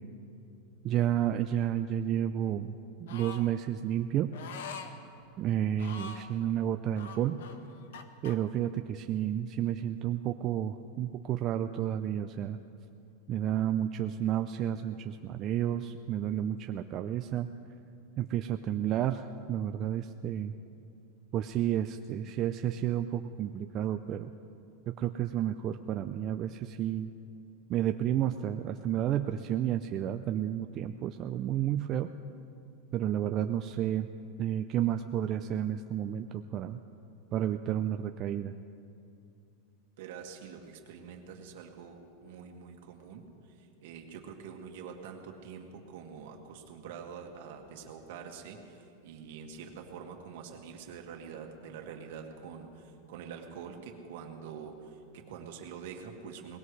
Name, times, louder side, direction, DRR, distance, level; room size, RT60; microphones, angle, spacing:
voice 1, 0.8-2.7 3.0-4.4 5.4-7.4 8.2-12.6 13.3-17.5 18.2-20.5 21.3-24.3 24.9-27.1 27.7-32.1 32.9-34.1 34.4-36.8 37.3-38.5, right 11 dB, 35° right, 7 dB, 0.4 m, -31 dB
sound 1, 3.1-3.5 4.3-4.9 5.7-6.3 6.9-8.4, left 6 dB, 80° left, 1.1 m, -44 dB
voice 2, 40.0-56.6, right 6 dB, 65° right, 2 dB, 1.9 m, -45 dB
22.5 x 19.5 x 3.2 m, 2.6 s
supercardioid pair, 155°, 0 cm